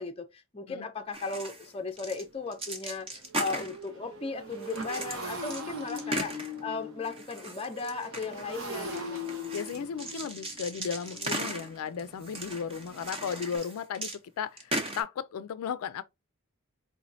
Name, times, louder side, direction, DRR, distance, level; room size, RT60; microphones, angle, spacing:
voice 1, 0.0-3.1 3.4-9.2, left 4 dB, 25° left, 0.5 m, -36 dB
Motorcycle, 1.0-1.1 1.5-1.7 2.0-13.6, left 1 dB, 60° right, 1.2 m, -41 dB
sound 1, 1.1-1.7 2.0-2.2 2.5-3.9 4.5-6.7 7.0-14.2 14.6-15.0, right 1 dB, 25° right, 0.7 m, -37 dB
voice 2, 9.5-16.0, left 7 dB, 80° left, 0.4 m, -35 dB
4.5 x 3.1 x 2.6 m
head